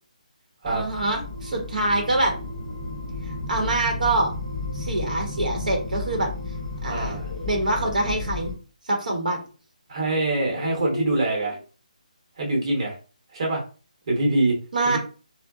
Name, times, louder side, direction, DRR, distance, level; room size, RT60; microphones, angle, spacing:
sound 1, 0.6-8.5, left 3 dB, 5° left, 0.5 m, -33 dB
voice 1, 0.7-2.3 3.2-4.3 4.7-6.3 6.8-8.5 8.8-9.4 14.7-15.0, right 2 dB, 85° right, 1 dB, 0.9 m, -25 dB
sound 2, 6.7-8.0 9.5-9.6 10.3-11.6, left 2 dB, 75° left, 0.4 m, -36 dB
voice 2, 6.8-7.3 9.9-11.6 12.4-12.9 13.3-13.6 14.1-14.6 14.8-15.0, right 2 dB, 45° right, -1 dB, 1.0 m, -24 dB
2.7 x 2.1 x 2.3 m, 0.35 s
hypercardioid pair, 170°, 4 cm